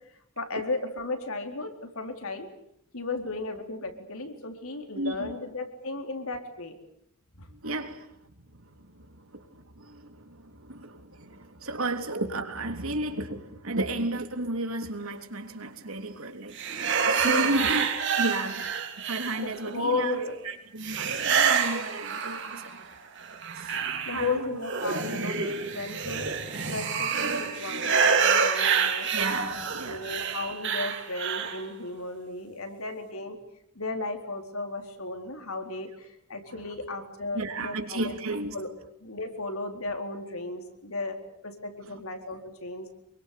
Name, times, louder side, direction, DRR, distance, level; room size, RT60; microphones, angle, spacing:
voice 1, 0.4-2.5 2.9-6.8 7.3-7.5 17.2-17.8 19.4-20.4 24.0-26.3 26.7-29.1 29.9-33.4 33.8-38.1 38.5-38.7 39.0-42.9, left 3 dB, 70° left, 4.2 m, -35 dB
voice 2, 4.9-5.3 7.5-8.1 8.6-16.6 17.1-18.7 19.0-22.8 23.5-24.6 29.1-30.2 36.5-36.6 37.3-38.5 41.9-42.0, right 2 dB, 70° right, 3.4 m, -33 dB
sound 1, 16.5-19.7 20.8-22.8 23.2-31.6, right 6 dB, 55° right, 3.8 m, -27 dB
26.5 x 23.5 x 8.5 m
head